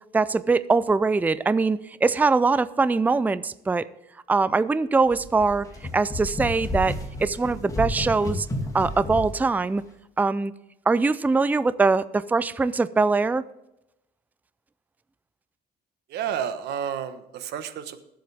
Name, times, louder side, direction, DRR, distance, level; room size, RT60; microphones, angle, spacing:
voice 1, 0.1-3.8 4.3-5.7 5.9-8.5 8.7-9.8 10.2-10.5 10.9-13.4, right 4 dB, 10° right, 16 dB, 0.4 m, -22 dB
sound 1, 5.1-9.4, left 1 dB, 20° left, 2.6 m, -31 dB
voice 2, 16.1-18.0, right 9 dB, 75° right, 10 dB, 1.2 m, -30 dB
20.0 x 7.7 x 3.5 m, 0.88 s
cardioid pair, 110°, 17 cm